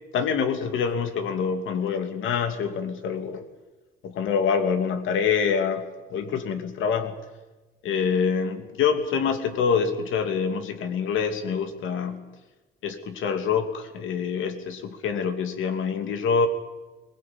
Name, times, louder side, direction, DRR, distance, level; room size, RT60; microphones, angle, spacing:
voice 1, 0.1-3.4 4.0-5.8 6.1-7.1 7.8-12.2 12.8-16.5, left 6 dB, 80° left, 7 dB, 2.8 m, -26 dB
22.0 x 20.5 x 8.8 m, 1.2 s
cardioid pair, 90°, 20 cm